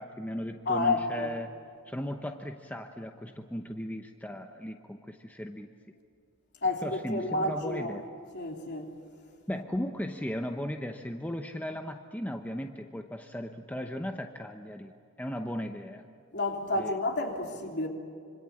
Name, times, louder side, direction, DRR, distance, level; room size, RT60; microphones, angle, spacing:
voice 1, 0.0-1.5 1.9-5.7 6.8-8.1 9.5-14.9 15.2-16.0 16.8-16.9, equal, 5° left, 0.8 m, -36 dB
voice 2, 0.6-1.3 6.6-8.0 8.3-8.9 16.3-17.9, left 2 dB, 50° left, 3.4 m, -30 dB
26.0 x 25.0 x 8.5 m
head